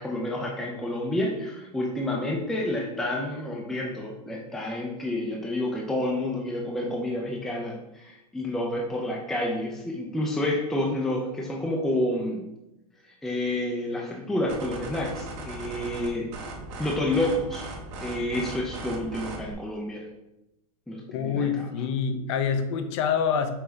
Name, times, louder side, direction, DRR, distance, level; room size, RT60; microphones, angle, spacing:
voice 1, 0.0-12.5 13.2-16.3 16.8-17.7 18.0-20.1 20.9-21.5, left 1 dB, ahead, -1 dB, 0.4 m, -29 dB
sound 1, 14.5-19.5, right 2 dB, 40° right, 0.8 m, -38 dB
voice 2, 21.1-23.5, left 6 dB, 50° left, 9 dB, 0.5 m, -26 dB
5.5 x 2.7 x 3.3 m, 0.91 s
hypercardioid pair, 140°, 20 cm